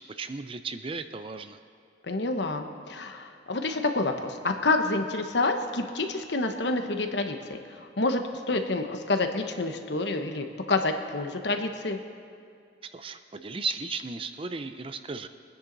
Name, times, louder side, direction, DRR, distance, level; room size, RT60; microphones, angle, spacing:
voice 1, 0.0-1.6 12.9-15.3, right 4 dB, 30° right, 9 dB, 0.5 m, -35 dB
voice 2, 2.0-8.2 8.5-12.0, left 2 dB, 65° left, 6 dB, 1.1 m, -28 dB
23.0 x 9.9 x 4.0 m, 2.4 s
head